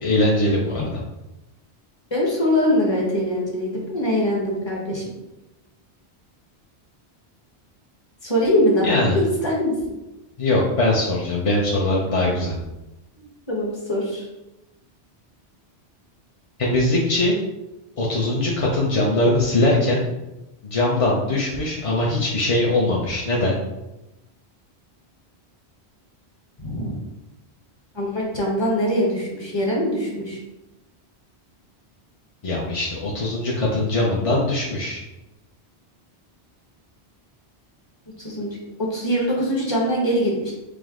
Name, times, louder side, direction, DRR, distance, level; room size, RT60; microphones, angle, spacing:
voice 1, 0.0-0.8 8.8-9.2 10.4-12.5 16.6-17.4 18.0-20.0 20.6-23.6 32.4-35.0, left 2 dB, 45° left, -4 dB, 0.5 m, -21 dB
voice 2, 2.1-5.0 8.2-9.7 13.2-14.3 26.6-27.0 27.9-30.4 38.2-40.5, equal, 25° left, -3 dB, 1.0 m, -23 dB
4.8 x 2.0 x 3.6 m, 0.98 s
omnidirectional pair, 1.1 m